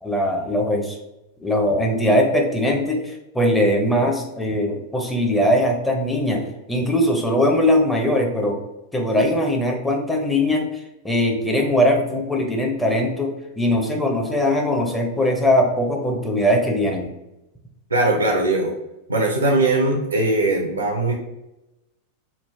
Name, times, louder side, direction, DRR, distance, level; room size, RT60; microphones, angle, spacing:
voice 1, 0.0-1.0 1.4-8.6 8.9-17.1, left 1 dB, 5° left, 0 dB, 0.7 m, -21 dB
voice 2, 17.9-18.7 19.1-21.1, right 2 dB, 80° right, 1 dB, 0.5 m, -20 dB
3.3 x 2.4 x 3.3 m, 0.92 s
figure-of-eight pair, 90°, 0 cm